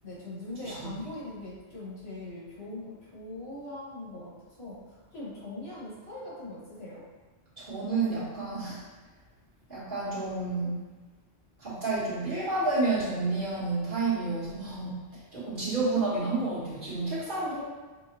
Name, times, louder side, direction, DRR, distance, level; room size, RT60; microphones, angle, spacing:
voice 1, 0.0-7.0 15.6-16.6, left 2 dB, 65° left, -7 dB, 1.7 m, -41 dB
voice 2, 7.6-8.8 9.7-10.8 11.6-15.0 15.3-17.6, right 3 dB, 50° right, -11 dB, 1.7 m, -30 dB
6.2 x 2.3 x 2.9 m, 1.3 s
omnidirectional pair, 1.1 m